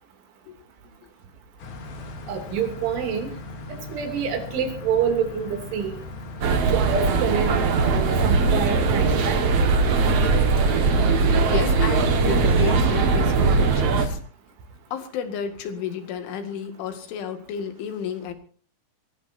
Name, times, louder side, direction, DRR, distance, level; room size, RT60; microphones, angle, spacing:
sound 1, 1.6-14.2, left 2 dB, 55° left, 4.0 m, -38 dB
voice 1, 2.3-3.3 3.7-6.0 6.7-9.4, right 6 dB, 85° right, 6 dB, 5.3 m, -27 dB
sound 2, 6.4-14.1, right 4 dB, 60° right, 1.6 m, -20 dB
voice 2, 11.4-14.2 14.9-18.3, left 7 dB, 85° left, 7 dB, 4.4 m, -32 dB
23.5 x 17.5 x 2.7 m, 0.42 s
omnidirectional pair, 5.3 m